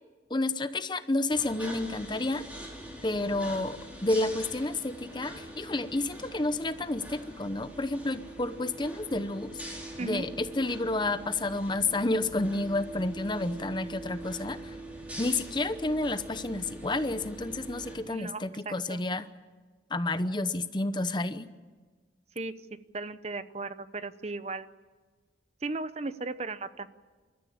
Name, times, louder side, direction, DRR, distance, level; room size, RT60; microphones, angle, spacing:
voice 1, 0.3-2.4 3.0-9.6 10.0-14.6 15.2-19.3 19.9-21.5, left 2 dB, 25° left, 12 dB, 0.9 m, -30 dB
sound 1, 1.3-18.0, right 1 dB, 10° right, 4.9 m, -43 dB
voice 2, 18.1-19.0 22.4-22.5 22.9-24.7 25.6-26.9, right 3 dB, 35° right, 13 dB, 0.8 m, -36 dB
28.5 x 14.0 x 8.6 m, 1.4 s
head